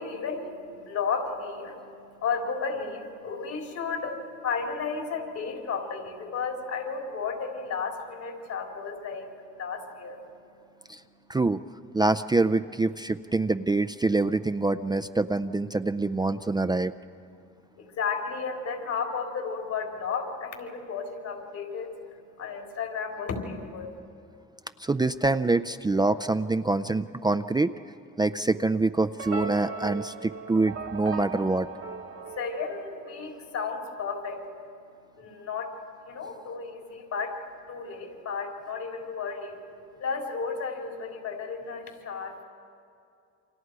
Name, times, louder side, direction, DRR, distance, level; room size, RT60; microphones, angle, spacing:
voice 1, 0.0-9.3 9.6-10.2 17.8-21.9 22.4-23.9 32.2-34.5 35.2-35.8 36.1-39.6 40.0-42.4, left 5 dB, 70° left, 1 dB, 4.2 m, -33 dB
voice 2, 11.9-16.9 24.8-27.7 28.2-31.7, right 3 dB, 15° right, 9 dB, 0.4 m, -25 dB
sound 1, 29.2-33.5, right 5 dB, 55° right, 1.4 m, -38 dB
29.0 x 25.5 x 4.8 m, 2.5 s
cardioid pair, 90°, 30 cm